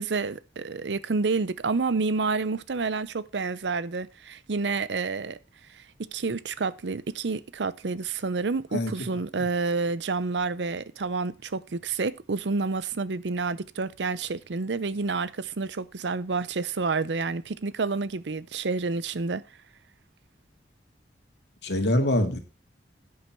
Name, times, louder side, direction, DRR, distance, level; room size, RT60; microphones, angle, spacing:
voice 1, 0.0-5.4 5.7-19.4, right 4 dB, 80° right, 0.7 m, -29 dB
voice 2, 21.6-22.4, left 1 dB, 75° left, 2.1 m, -24 dB
10.5 x 8.5 x 4.6 m
head